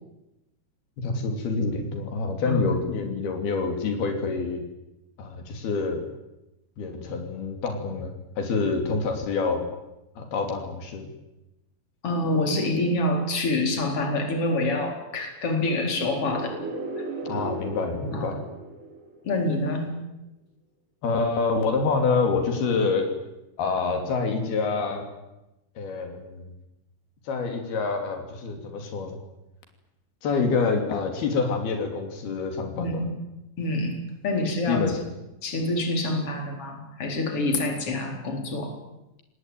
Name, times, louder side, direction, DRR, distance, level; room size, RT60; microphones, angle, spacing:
voice 1, 1.0-4.7 5.2-6.0 6.8-9.6 10.2-11.1 17.2-18.4 21.0-23.1 23.6-25.1 25.8-26.5 27.3-29.2 30.2-32.9 34.7-35.0, left 4 dB, 85° left, 4 dB, 4.9 m, -27 dB
voice 2, 12.0-16.6 17.0-17.1 18.1-18.3 19.2-19.9 32.7-33.1 33.6-34.0 34.2-34.9 35.4-38.7, left 2 dB, 35° left, 3 dB, 5.0 m, -26 dB
sound 1, 15.7-19.5, right 2 dB, 55° right, 5.3 m, -36 dB
25.5 x 19.5 x 9.4 m, 0.95 s
omnidirectional pair, 4.3 m